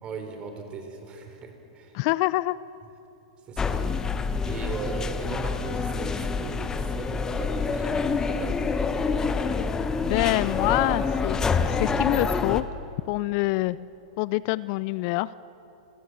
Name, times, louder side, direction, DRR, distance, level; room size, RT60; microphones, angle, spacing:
voice 1, 0.0-2.0 3.5-8.9, right 4 dB, 30° right, 5 dB, 3.8 m, -38 dB
voice 2, 1.9-2.6 10.0-11.4 11.7-12.6 13.1-13.8 14.2-15.3, left 20 dB, 50° left, 20 dB, 0.4 m, -25 dB
sound 1, 3.6-12.6, left 4 dB, 15° left, 1.1 m, -27 dB
27.0 x 16.5 x 7.5 m, 3.0 s
hypercardioid pair, 105°, 3 cm